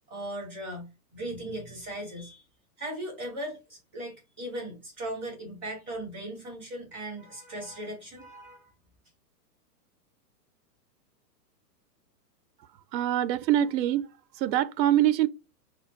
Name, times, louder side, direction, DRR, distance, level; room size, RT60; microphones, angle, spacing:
voice 1, 0.1-2.4 2.8-8.7, right 1 dB, 5° left, 0.5 m, -38 dB
voice 2, 12.9-14.1 14.4-15.3, right 12 dB, 85° right, 0.6 m, -24 dB
4.3 x 2.2 x 4.6 m
hypercardioid pair, 180°, 49 cm